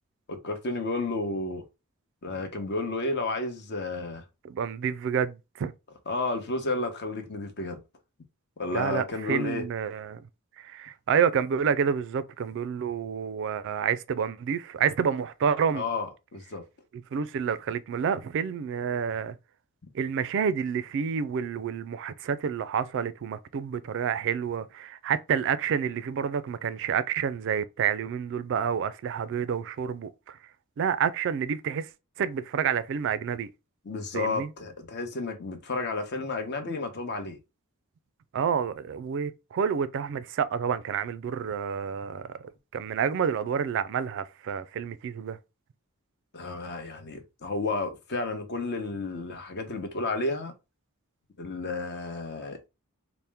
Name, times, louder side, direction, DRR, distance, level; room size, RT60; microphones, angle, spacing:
voice 1, 0.3-1.6 2.2-4.2 6.1-7.8 8.6-9.6 15.7-16.6 33.8-37.4 46.3-50.5 51.4-52.7, left 3 dB, 50° left, 0.8 m, -32 dB
voice 2, 4.4-5.7 8.7-10.2 10.6-15.8 17.1-19.4 19.9-30.4 30.8-31.9 32.2-33.5 34.1-34.5 38.3-45.4, right 7 dB, 60° right, 0.3 m, -29 dB
4.2 x 2.1 x 3.4 m
head